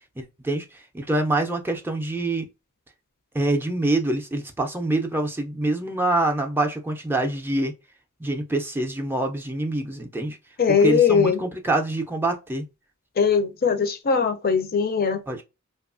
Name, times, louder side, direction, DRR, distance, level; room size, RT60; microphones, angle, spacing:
voice 1, 0.2-2.5 3.3-7.7 8.2-10.4 10.7-12.7 15.3-15.4, right 2 dB, 10° right, 0.4 m, -25 dB
voice 2, 10.6-11.4 13.2-15.2, left 6 dB, 45° left, 0.5 m, -20 dB
2.9 x 2.3 x 2.4 m
head